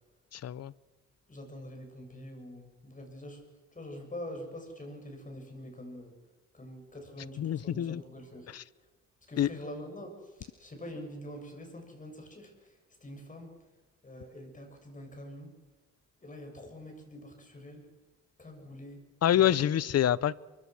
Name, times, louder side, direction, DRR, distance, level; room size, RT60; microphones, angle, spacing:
voice 1, 0.3-0.7 7.4-8.0 8.5-8.6 9.4-9.5 19.2-20.3, left 11 dB, 55° left, 0.8 m, -26 dB
voice 2, 1.3-3.4 3.7-6.1 6.5-8.5 9.3-13.6 14.0-15.6 16.2-17.9 18.4-19.6, left 1 dB, 25° left, 7.6 m, -45 dB
24.0 x 23.0 x 6.3 m
cardioid pair, 90°, 30 cm